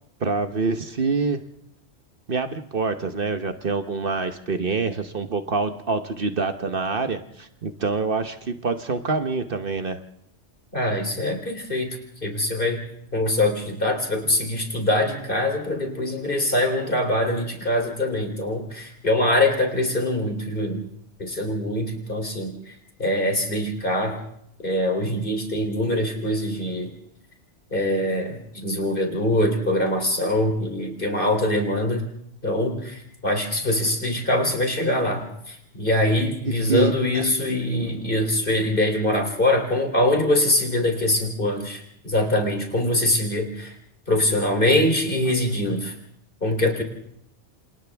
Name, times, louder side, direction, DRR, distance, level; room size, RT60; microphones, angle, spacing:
voice 1, 0.2-1.4 2.3-10.0 36.4-36.9, right 4 dB, 55° right, 8 dB, 1.2 m, -26 dB
voice 2, 10.7-11.9 12.2-12.8 13.1-20.8 21.2-24.2 24.6-26.9 27.7-32.1 32.4-43.7 44.1-45.9 46.4-46.8, left 1 dB, 50° left, 3 dB, 3.5 m, -23 dB
27.5 x 27.5 x 3.5 m, 0.73 s
omnidirectional pair, 1.2 m